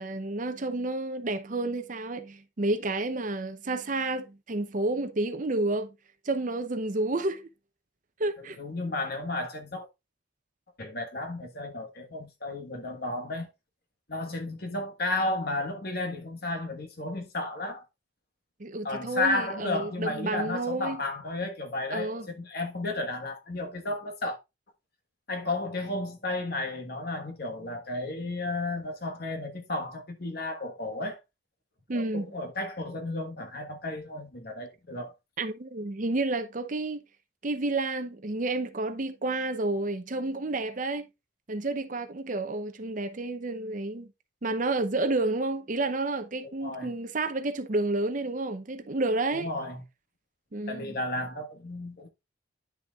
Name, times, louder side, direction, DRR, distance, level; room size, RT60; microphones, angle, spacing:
voice 1, 0.0-5.9 6.3-7.5 8.2-8.6 18.6-21.0 21.9-22.3 31.9-32.3 35.4-37.0 37.4-41.0 41.5-44.1 44.4-49.5 50.5-50.9, right 2 dB, 40° right, 0.6 m, -30 dB
voice 2, 8.4-9.9 10.8-13.5 14.1-17.8 18.8-24.4 25.3-31.2 31.9-35.1 46.4-46.9 49.3-49.8 50.7-52.1, left 2 dB, 50° left, 1.4 m, -33 dB
9.7 x 6.4 x 2.4 m
head